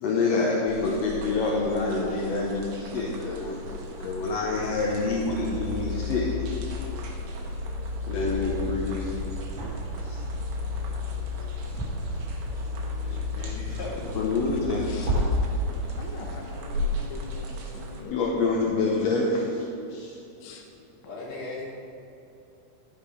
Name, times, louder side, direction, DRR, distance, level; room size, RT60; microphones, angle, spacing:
voice 1, 0.0-3.7 4.0-6.5 8.1-9.1 10.0-10.2 14.2-14.8 18.1-20.2, left 3 dB, 70° left, -3 dB, 1.7 m, -27 dB
sound 1, 0.7-18.0, left 1 dB, 80° right, 2.7 m, -37 dB
sound 2, 4.6-15.2, left 3 dB, 40° right, 2.4 m, -33 dB
voice 2, 8.2-8.5 13.0-14.3 21.0-21.6, left 2 dB, 45° left, -6 dB, 3.1 m, -38 dB
voice 3, 14.8-15.1 16.0-18.6 20.4-20.7, left 3 dB, 85° left, 1 dB, 1.1 m, -42 dB
11.5 x 6.9 x 5.0 m, 2.8 s
omnidirectional pair, 3.8 m